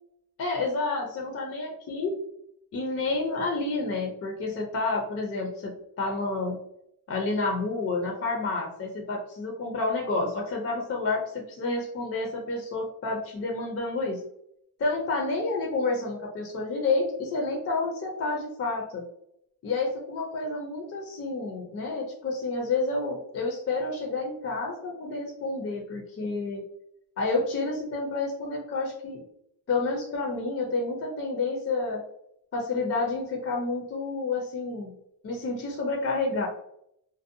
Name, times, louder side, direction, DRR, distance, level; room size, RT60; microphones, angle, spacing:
voice 1, 0.4-2.2 2.7-6.6 7.1-14.2 14.8-19.0 19.6-26.6 27.2-29.2 29.7-32.0 32.5-34.9 35.2-36.5, left 3 dB, 40° left, 0 dB, 0.5 m, -29 dB
2.6 x 2.1 x 2.5 m, 0.75 s
cardioid pair, 110°, 39 cm